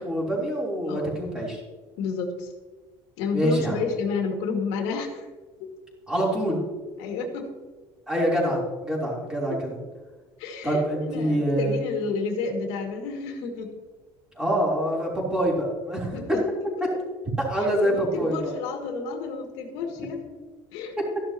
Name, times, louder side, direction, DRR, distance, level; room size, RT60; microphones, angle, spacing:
voice 1, 0.0-1.6 3.3-3.8 6.1-6.6 8.1-9.8 10.6-11.8 14.4-16.2 17.4-18.6, right 1 dB, 5° right, -4 dB, 3.5 m, -25 dB
voice 2, 2.0-2.5 3.2-5.3 5.6-5.7 7.0-7.5 9.5-9.6 10.4-10.8 11.1-13.7 16.1-16.4 17.8-20.3 20.7-21.0, left 4 dB, 90° left, 2 dB, 2.2 m, -30 dB
13.5 x 11.5 x 3.0 m, 1.3 s
cardioid pair, 155°, 10 cm